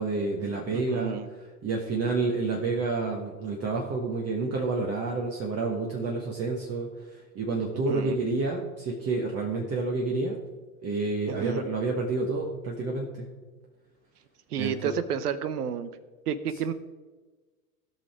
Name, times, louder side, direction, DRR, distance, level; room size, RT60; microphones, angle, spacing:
voice 1, 0.0-10.4 10.8-13.3 14.6-14.9, right 3 dB, 30° right, 0 dB, 1.5 m, -29 dB
voice 2, 0.7-1.3 7.9-8.2 11.3-11.6 14.5-15.9 16.3-16.7, right 7 dB, 80° right, 13 dB, 1.0 m, -31 dB
16.5 x 5.6 x 4.5 m, 1.3 s
hypercardioid pair, 95°, 46 cm